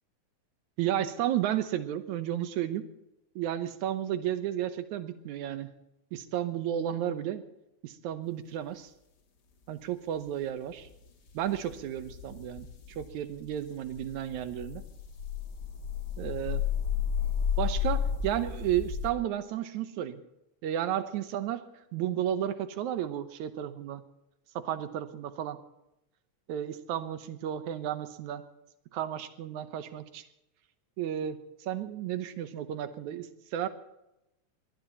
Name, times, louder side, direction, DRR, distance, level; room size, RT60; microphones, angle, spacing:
voice 1, 0.8-2.8 3.4-5.7 6.1-7.4 7.8-8.9 9.7-10.9 11.3-14.8 16.2-16.6 17.6-20.2 20.6-24.0 24.6-25.6 26.5-28.4 28.9-30.2 31.0-33.7, right 11 dB, 80° right, 10 dB, 2.4 m, -33 dB
sound 1, 11.5-13.1 13.5-13.6 13.9-19.1, left 8 dB, 45° left, 1.6 m, -32 dB
22.5 x 19.0 x 3.0 m, 0.88 s
omnidirectional pair, 3.4 m